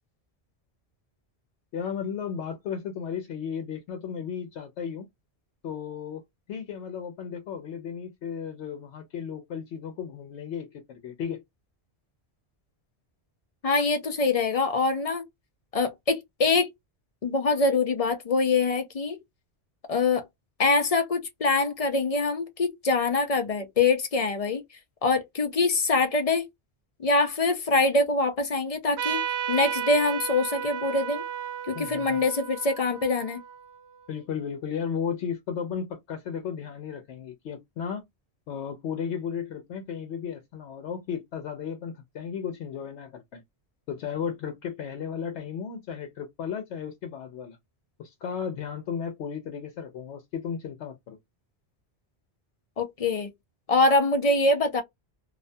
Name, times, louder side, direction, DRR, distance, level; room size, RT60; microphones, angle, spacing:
voice 1, 1.7-5.1 5.6-6.2 6.5-11.4 31.7-32.2 34.1-38.0 38.5-43.4 43.9-47.6 48.0-51.2, left 7 dB, 80° left, 0.9 m, -34 dB
voice 2, 13.6-15.2 15.7-16.7 17.2-19.2 19.9-20.2 20.6-24.6 25.0-26.4 27.0-31.2 31.7-33.4 52.8-53.3 53.7-54.8, left 3 dB, 45° left, 0.5 m, -24 dB
Trumpet, 29.0-34.1, right 9 dB, 80° right, 0.9 m, -33 dB
2.4 x 2.2 x 2.5 m
omnidirectional pair, 1.1 m